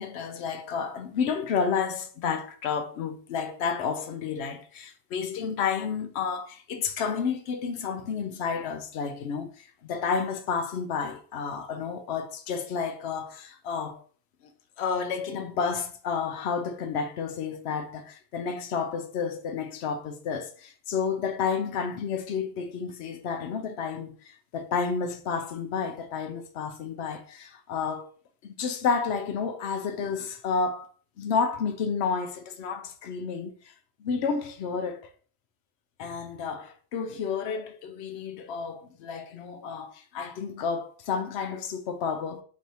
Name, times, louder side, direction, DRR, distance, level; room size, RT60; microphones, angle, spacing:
voice 1, 0.0-14.0 14.8-28.1 28.4-30.9 31.2-33.7 34.0-35.1 36.0-42.4, left 6 dB, 70° left, 0.8 m, -31 dB
4.5 x 3.1 x 2.7 m
omnidirectional pair, 1.2 m